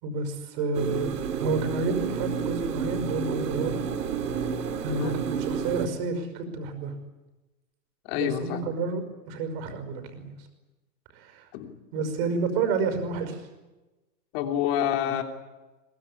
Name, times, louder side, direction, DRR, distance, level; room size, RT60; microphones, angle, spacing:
voice 1, 0.0-1.1 1.4-3.9 4.8-7.0 8.1-10.5 11.1-11.5 11.9-13.5, right 4 dB, 35° right, 7 dB, 5.5 m, -30 dB
sound 1, 0.7-5.9, right 6 dB, 90° right, 2.9 m, -30 dB
voice 2, 8.0-8.7 11.5-11.8 14.3-15.2, left 10 dB, 35° left, 4 dB, 3.2 m, -28 dB
23.0 x 21.5 x 9.9 m, 1.1 s
hypercardioid pair, 160°, 47 cm